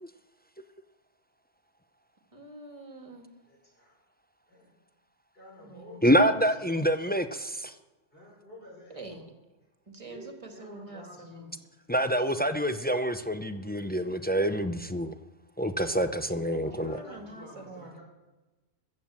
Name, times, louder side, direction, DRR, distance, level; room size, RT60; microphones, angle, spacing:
voice 1, 2.3-3.3 5.6-6.1 8.9-9.3 9.9-11.5 16.3-18.0, right 2 dB, 25° right, 4 dB, 1.9 m, -46 dB
voice 2, 3.5-3.9 4.5-4.7 5.3-6.8 8.1-9.2 10.0-11.5 16.7-18.0, left 1 dB, 50° left, -3 dB, 6.0 m, -50 dB
voice 3, 6.0-7.7 11.9-15.1 15.6-17.0, equal, 15° left, 9 dB, 0.3 m, -26 dB
14.5 x 8.7 x 7.5 m, 1.2 s
omnidirectional pair, 1.2 m